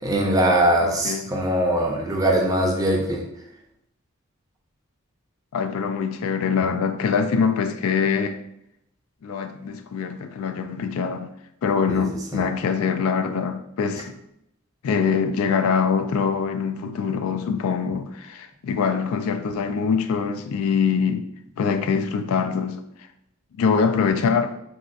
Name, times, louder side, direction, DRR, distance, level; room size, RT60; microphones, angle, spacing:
voice 1, 0.0-3.2 11.9-12.0 12.3-12.4, right 1 dB, 15° right, 0.4 m, -21 dB
voice 2, 0.8-1.3 5.5-8.4 9.2-11.3 11.6-14.2 14.8-21.3 21.6-22.8 23.6-24.5, left 6 dB, 80° left, 0.3 m, -24 dB
4.1 x 2.3 x 2.5 m
head